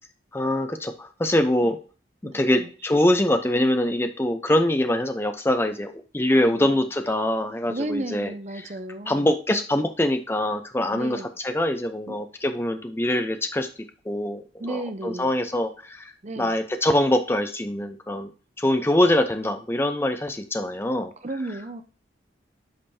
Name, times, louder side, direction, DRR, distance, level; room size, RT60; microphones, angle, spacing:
voice 1, 0.3-1.8 2.2-8.3 9.1-13.7 14.1-18.3 18.6-21.1, left 1 dB, 15° left, 7 dB, 0.6 m, -24 dB
voice 2, 2.2-2.7 6.3-6.9 7.7-9.3 10.9-11.3 12.1-12.2 14.6-15.3 16.2-16.5 21.2-21.8, right 2 dB, 40° right, 9 dB, 0.7 m, -33 dB
8.7 x 5.1 x 2.7 m, 0.37 s
head